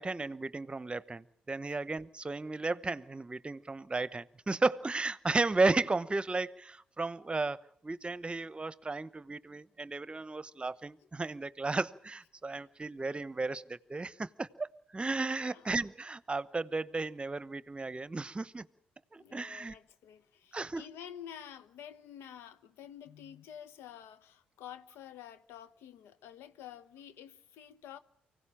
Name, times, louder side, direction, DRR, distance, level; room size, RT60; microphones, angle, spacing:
voice 1, 0.0-18.6 19.1-19.7 20.5-20.9, right 3 dB, 25° right, 1.0 m, -34 dB
voice 2, 11.0-11.3 12.2-12.7 15.4-15.7 19.2-28.0, left 9 dB, 75° left, 1.1 m, -50 dB
24.5 x 16.5 x 8.9 m
hypercardioid pair, 55°, 4 cm